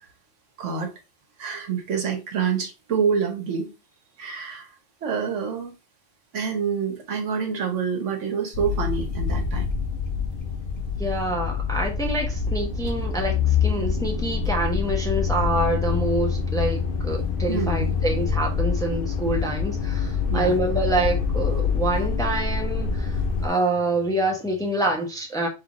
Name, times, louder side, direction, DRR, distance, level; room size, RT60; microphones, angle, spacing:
voice 1, 0.6-0.9 1.4-3.7 4.2-4.7 5.0-5.7 6.3-9.7 17.5-17.9 20.3-20.5, right 6 dB, 75° right, 1.4 m, -27 dB
sound 1, 8.5-23.5, left 6 dB, 55° left, 0.8 m, -26 dB
voice 2, 11.0-23.2 23.4-25.5, right 1 dB, 5° left, 0.7 m, -26 dB
3.4 x 3.3 x 3.7 m
omnidirectional pair, 1.3 m